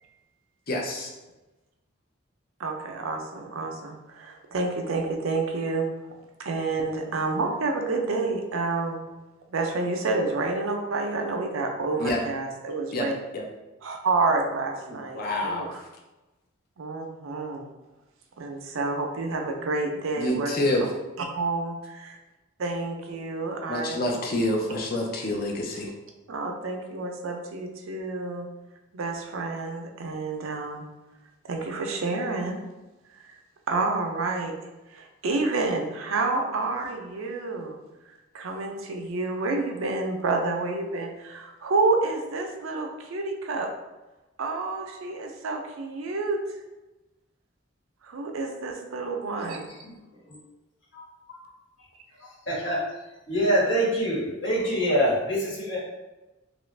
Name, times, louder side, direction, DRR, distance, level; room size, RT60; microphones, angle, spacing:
voice 1, 0.7-1.1 12.0-12.2 12.9-13.1 13.3-13.5 14.9-15.7 20.2-20.8 23.7-25.9, left 1 dB, 45° left, 0 dB, 0.5 m, -27 dB
voice 2, 2.6-5.8 6.4-9.0 9.5-13.1 13.8-15.8 16.8-17.7 18.4-20.7 21.3-22.2 22.6-24.0 26.3-28.5 28.9-30.9 31.4-32.6 33.2-33.4 33.7-34.5 34.9-37.7 38.3-43.7 44.4-46.4 48.0-49.7, right 3 dB, 85° right, 2 dB, 0.5 m, -29 dB
voice 3, 52.5-52.8 53.3-55.8, equal, 65° left, -7 dB, 1.2 m, -24 dB
2.9 x 2.4 x 3.2 m, 1.1 s
head